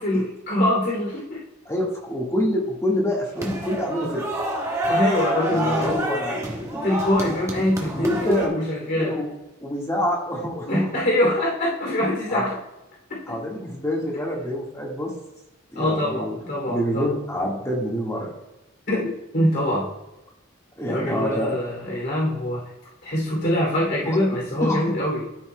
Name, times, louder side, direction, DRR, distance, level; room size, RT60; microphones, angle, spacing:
voice 1, 0.0-1.4 4.9-6.0 6.8-9.2 10.7-12.6 13.1-13.2 15.7-17.1 18.9-19.9 20.9-22.6 23.0-25.2, left 1 dB, 55° left, -4 dB, 2.8 m, -24 dB
voice 2, 1.6-4.2 5.5-6.4 6.7-6.9 8.0-8.5 8.8-9.3 9.6-10.9 12.3-12.5 13.3-15.1 15.7-18.3 20.8-21.6 24.0-24.2 24.6-24.8, equal, 15° left, -3 dB, 1.6 m, -26 dB
sound 1, 3.4-8.5, equal, 15° right, 1.3 m, -28 dB
13.0 x 5.6 x 2.2 m, 0.95 s
head